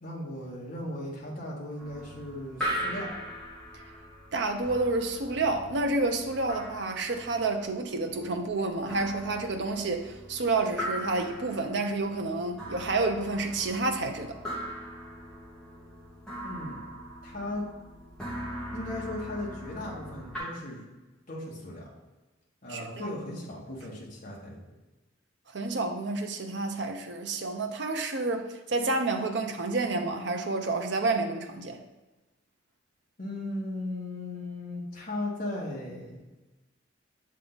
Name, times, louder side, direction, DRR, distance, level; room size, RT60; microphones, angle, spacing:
voice 1, 0.0-3.1 16.4-16.8 17.2-17.6 18.7-20.8 21.3-21.8 22.6-24.6 33.2-36.2, left 1 dB, 45° left, -4 dB, 1.5 m, -37 dB
sound 1, 1.8-20.4, equal, 5° left, 1.8 m, -40 dB
voice 2, 4.3-14.3 22.7-23.1 25.5-31.8, right 3 dB, 65° right, 4 dB, 0.7 m, -29 dB
6.8 x 3.8 x 3.9 m, 1.1 s
head